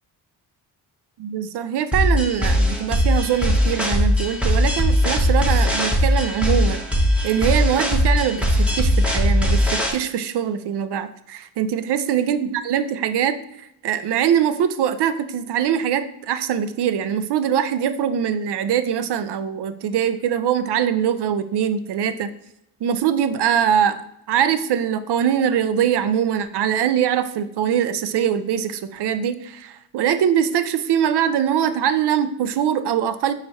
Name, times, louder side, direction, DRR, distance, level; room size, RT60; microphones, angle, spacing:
voice 1, 1.2-6.8 7.2-13.4 13.8-22.3 22.8-24.0 24.3-33.3, right 9 dB, 55° right, 11 dB, 0.5 m, -22 dB
sound 1, 1.9-9.9, equal, ahead, 0.9 m, -19 dB
4.9 x 2.4 x 4.0 m, 0.82 s
supercardioid pair, 55°, 50 cm